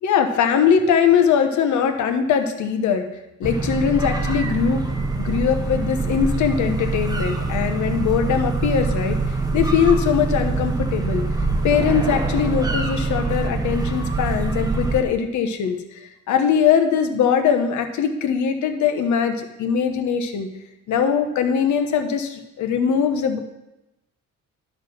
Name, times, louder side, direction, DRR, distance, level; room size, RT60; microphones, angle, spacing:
voice 1, 0.0-3.1 3.4-11.3 11.6-20.5 20.9-23.4, left 7 dB, 75° left, 7 dB, 1.1 m, -21 dB
sound 1, 3.4-15.0, right 3 dB, 10° right, 1.2 m, -24 dB
11.5 x 4.0 x 6.2 m, 0.93 s
cardioid pair, 90°, 30 cm